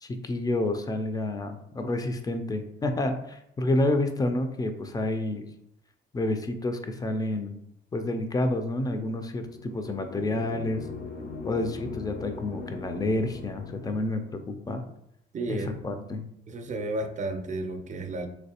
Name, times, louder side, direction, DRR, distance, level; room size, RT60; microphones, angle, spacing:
voice 1, 0.0-5.5 6.1-7.5 7.9-10.8 11.4-14.9 15.5-15.6 15.8-16.2, left 2 dB, 20° left, 7 dB, 0.5 m, -29 dB
sound 1, 9.4-14.3, left 4 dB, 55° left, 0.8 m, -40 dB
voice 2, 15.3-16.0 16.5-18.3, right 2 dB, 40° right, 6 dB, 0.6 m, -33 dB
3.2 x 3.1 x 2.9 m, 0.77 s
cardioid pair, 90°, 20 cm